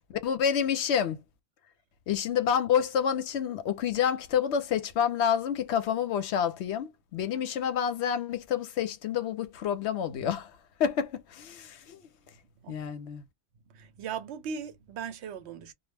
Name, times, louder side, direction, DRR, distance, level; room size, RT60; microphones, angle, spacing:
voice 1, 0.1-1.2 2.1-10.5 10.8-12.1 12.7-13.2, left 8 dB, 75° left, 0.9 m, -28 dB
voice 2, 13.7-15.7, right 7 dB, 80° right, 0.9 m, -38 dB
2.3 x 2.0 x 3.3 m
omnidirectional pair, 1.1 m